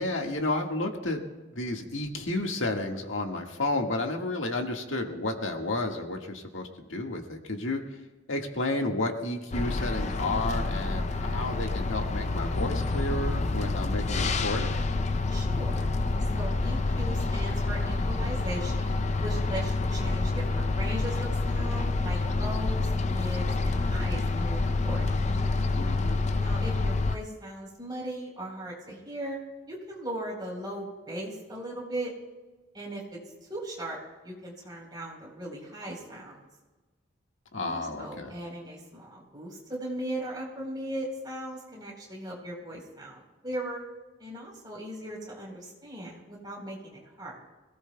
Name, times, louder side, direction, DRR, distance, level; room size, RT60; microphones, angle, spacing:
voice 1, 0.0-7.8 8.3-14.8 25.7-26.2 37.5-38.3, left 2 dB, 80° left, 2 dB, 1.7 m, -31 dB
sound 1, 9.5-27.2, left 3 dB, 35° left, 0.5 m, -28 dB
voice 2, 15.3-15.9 16.3-25.3 26.3-29.4 29.7-32.1 32.7-33.2 33.5-36.4 37.6-43.8 44.2-47.4, right 1 dB, 20° right, -2 dB, 4.0 m, -38 dB
26.0 x 17.5 x 2.3 m, 1.2 s
head